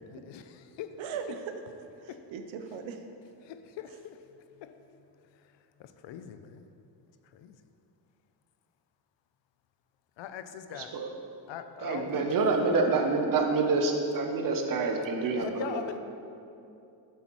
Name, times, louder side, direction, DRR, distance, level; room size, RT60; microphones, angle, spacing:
voice 1, 0.1-1.0 2.1-2.2 3.4-4.2 4.6-4.9 5.3-6.6 7.3-7.6 10.2-10.9 11.5-13.2 15.4-16.0, left 9 dB, 70° left, 9 dB, 0.5 m, -42 dB
voice 2, 1.0-1.5 1.8-3.0, right 6 dB, 85° right, 6 dB, 0.8 m, -39 dB
voice 3, 10.7-11.1 11.8-15.8, right 3 dB, 45° right, 3 dB, 0.8 m, -27 dB
8.0 x 7.9 x 3.1 m, 2.7 s
cardioid pair, 165°, 45 cm